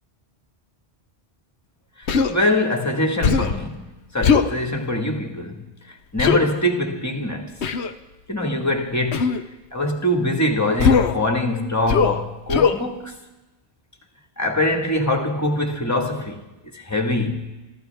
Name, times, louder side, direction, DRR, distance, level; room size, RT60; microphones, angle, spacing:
voice 1, 2.0-3.9 4.1-5.6 6.1-7.5 8.3-9.3 9.7-13.1 14.4-16.5 16.7-17.5, left 1 dB, 15° left, 1.8 m, -23 dB
Human voice, 2.1-2.3 3.2-3.6 4.2-4.5 6.2-6.4 7.6-7.9 9.1-9.4 10.8-11.2 11.9-12.2 12.5-12.8, left 6 dB, 80° left, 1.1 m, -18 dB
26.0 x 14.0 x 3.5 m
omnidirectional pair, 1.1 m